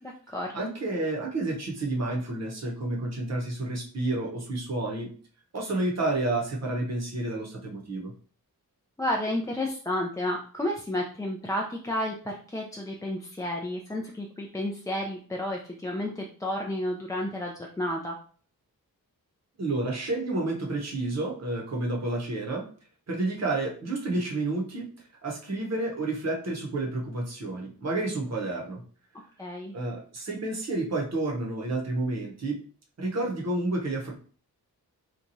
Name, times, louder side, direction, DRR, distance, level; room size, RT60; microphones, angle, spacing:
voice 1, 0.0-0.7 9.0-18.1 29.4-29.7, left 1 dB, 10° left, -1 dB, 0.3 m, -31 dB
voice 2, 0.5-5.1 5.5-8.1 19.6-22.6 23.1-24.9 25.2-28.8 29.7-32.6 33.0-34.1, right 2 dB, 45° right, -1 dB, 0.8 m, -30 dB
2.9 x 2.3 x 2.6 m, 0.43 s
wide cardioid pair, 90°, 37 cm